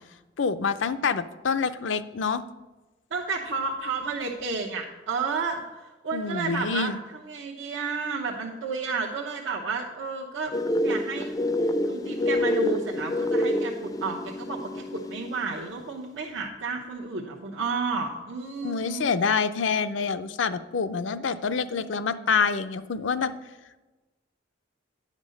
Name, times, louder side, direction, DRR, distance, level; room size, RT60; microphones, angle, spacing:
voice 1, 0.4-2.4 6.1-7.0 18.6-23.3, left 5 dB, 85° left, 11 dB, 0.5 m, -26 dB
voice 2, 3.1-11.4 11.8-19.1, right 4 dB, 80° right, -2 dB, 0.9 m, -32 dB
sound 1, 10.5-15.5, left 1 dB, 20° left, 0.4 m, -27 dB
10.0 x 5.2 x 6.4 m, 1.2 s
head